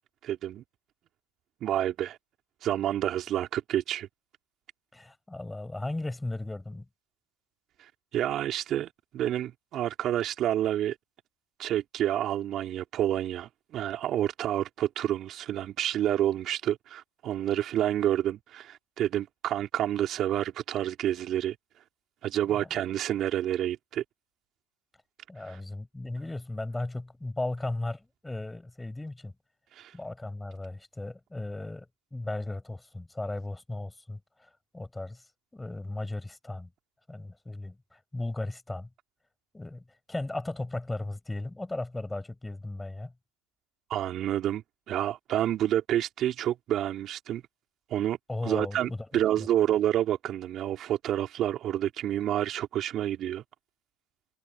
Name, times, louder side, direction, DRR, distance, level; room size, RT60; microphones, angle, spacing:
voice 1, 0.2-0.6 1.6-2.2 2.6-4.1 7.8-11.0 11.6-21.6 22.2-24.0 25.4-25.6 29.7-29.9 43.9-47.4 47.9-48.2 48.4-53.4, right 12 dB, 45° right, 3.7 m, -29 dB
voice 2, 4.9-6.8 22.5-22.7 25.3-29.3 29.9-35.2 35.5-36.7 37.1-38.9 39.5-43.1 48.3-49.1, left 2 dB, 10° left, 7.9 m, -36 dB
hypercardioid pair, 95°, 0 cm